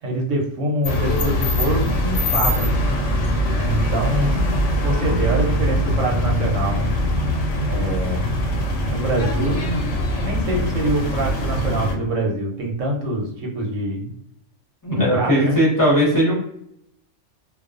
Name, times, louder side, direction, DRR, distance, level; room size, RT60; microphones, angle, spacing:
voice 1, 0.0-2.7 3.6-4.5 4.8-6.9 7.6-8.3 8.9-9.8 10.2-14.1 14.9-15.6, right 1 dB, 90° right, -1 dB, 1.1 m, -25 dB
sound 1, 0.8-11.9, equal, 80° left, 0.9 m, -22 dB
voice 2, 14.8-16.3, equal, 20° left, -6 dB, 0.7 m, -18 dB
2.3 x 2.3 x 2.4 m, 0.73 s
omnidirectional pair, 1.3 m